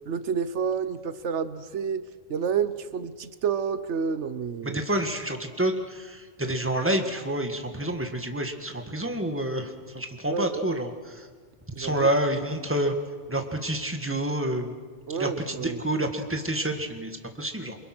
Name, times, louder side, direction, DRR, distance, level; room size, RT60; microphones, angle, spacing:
voice 1, 0.1-2.0 2.3-4.8 10.2-10.8 11.8-12.1 15.1-15.8, right 6 dB, 85° right, 13 dB, 1.2 m, -29 dB
voice 2, 4.6-9.7 9.9-10.9 11.8-12.9 13.3-14.7 15.2-17.1 17.4-17.8, right 1 dB, 10° right, 5 dB, 1.8 m, -28 dB
28.0 x 23.5 x 6.2 m, 1.6 s
omnidirectional pair, 1.2 m